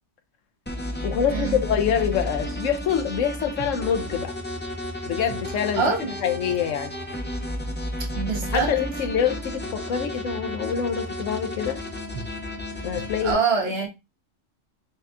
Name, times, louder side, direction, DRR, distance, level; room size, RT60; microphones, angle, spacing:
sound 1, 0.7-13.3, equal, 15° left, 0.5 m, -32 dB
voice 1, 1.0-4.3 5.1-5.8 6.2-6.9 8.5-11.8 12.8-13.4, left 8 dB, 80° left, 1.1 m, -25 dB
voice 2, 5.8-6.1 8.0-8.7 12.1-12.2 12.7-12.9 13.2-13.9, right 5 dB, 55° right, 1.2 m, -25 dB
6.7 x 2.3 x 2.6 m
omnidirectional pair, 1.3 m